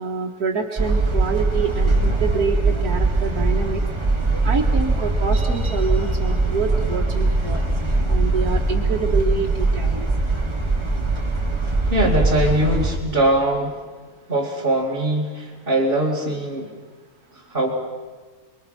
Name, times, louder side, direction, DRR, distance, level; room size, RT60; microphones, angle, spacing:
voice 1, 0.0-3.8 4.4-7.6 8.1-10.1, right 5 dB, 80° right, -1 dB, 2.1 m, -26 dB
sound 1, 0.8-13.0, right 2 dB, 20° right, 1.9 m, -21 dB
voice 2, 11.9-13.8 14.3-16.7 17.3-17.8, right 1 dB, 35° right, -5 dB, 2.7 m, -21 dB
29.5 x 22.0 x 5.8 m, 1.4 s
omnidirectional pair, 1.6 m